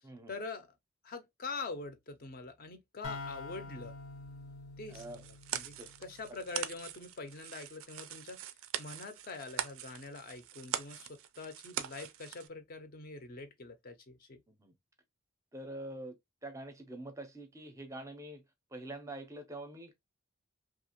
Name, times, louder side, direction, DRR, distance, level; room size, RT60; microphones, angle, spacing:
voice 1, 0.3-0.7 1.0-4.0 4.8-5.7 6.0-8.4 8.8-14.4, left 3 dB, 40° left, 0.5 m, -44 dB
sound 1, 3.0-6.7, left 3 dB, 80° left, 0.7 m, -46 dB
voice 2, 4.9-5.2 5.6-5.9 14.5-14.7 15.5-16.2 16.4-18.4 18.7-20.0, right 1 dB, 15° right, 0.5 m, -45 dB
sound 2, 4.9-12.5, right 10 dB, 70° right, 0.3 m, -42 dB
2.8 x 2.4 x 2.8 m
head